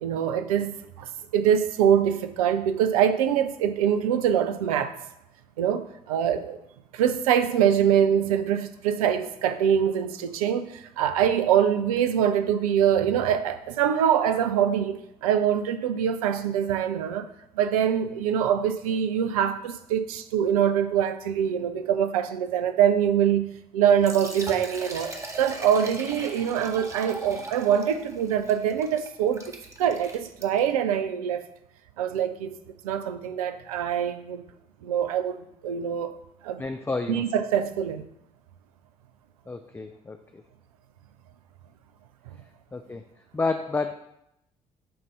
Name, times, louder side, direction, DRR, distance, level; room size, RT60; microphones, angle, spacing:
voice 1, 0.0-5.0 5.6-6.6 6.9-17.3 17.6-25.1 25.4-31.4 32.0-32.6 32.8-34.4 34.8-36.2 36.4-36.6 37.1-38.0, right 9 dB, 75° right, 0.4 m, -24 dB
Liquid, 23.9-30.8, right 2 dB, 15° right, 0.9 m, -40 dB
voice 2, 36.6-37.3 39.5-40.4 42.7-43.0 43.3-43.9, left 3 dB, 10° left, 0.4 m, -30 dB
7.7 x 2.6 x 5.3 m
figure-of-eight pair, 45°, 19 cm